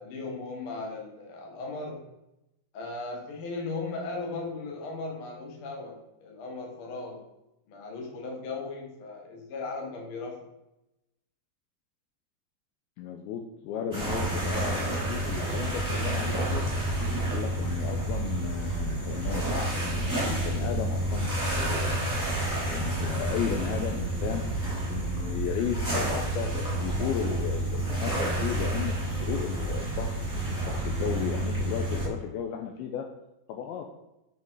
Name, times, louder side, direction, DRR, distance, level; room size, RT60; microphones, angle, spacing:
voice 1, 0.0-2.0 2.7-7.2 7.7-10.4, left 3 dB, 60° left, 0 dB, 1.4 m, -37 dB
voice 2, 13.0-16.6 17.3-21.3 21.6-22.2 22.7-24.4 24.9-26.5 26.8-28.9 29.2-30.2 30.6-33.1 33.5-33.9, left 8 dB, 90° left, 3 dB, 2.2 m, -34 dB
sound 1, 13.9-32.1, right 1 dB, 5° right, 1.4 m, -29 dB
7.9 x 5.3 x 4.7 m, 0.90 s
omnidirectional pair, 5.0 m